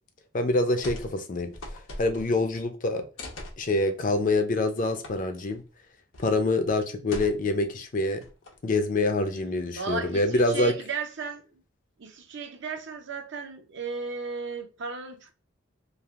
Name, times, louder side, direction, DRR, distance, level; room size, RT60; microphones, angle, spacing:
voice 1, 0.3-1.5 2.0-3.1 3.6-5.6 6.2-8.2 8.6-10.7, left 2 dB, 45° left, 0.5 m, -25 dB
sound 1, 0.8-1.1 1.4-2.5 3.2-3.6 5.0-5.1 5.5-5.6 6.1-6.4 7.1-7.7 8.2-8.7, left 1 dB, 85° left, 0.9 m, -40 dB
voice 2, 9.8-11.6 12.0-15.3, right 5 dB, 65° right, 0.6 m, -35 dB
3.3 x 2.5 x 2.4 m
head